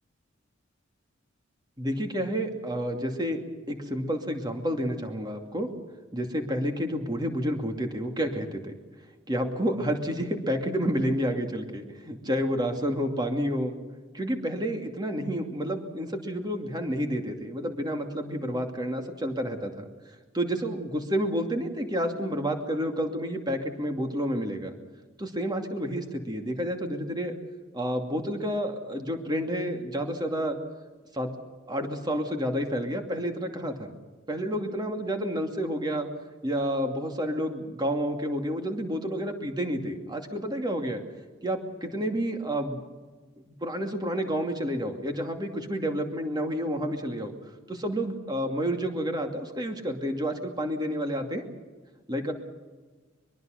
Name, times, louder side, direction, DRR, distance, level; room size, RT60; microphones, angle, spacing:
voice 1, 1.8-3.4 3.7-5.7 6.1-8.7 9.3-13.8 14.1-19.9 20.3-24.7 25.2-27.3 27.7-30.6 31.1-31.3 31.7-33.9 34.3-36.1 36.4-41.0 41.4-42.8 43.6-47.3 47.7-51.4 52.1-52.3, equal, 20° right, 4 dB, 2.6 m, -30 dB
23.0 x 23.0 x 6.6 m, 1.4 s
head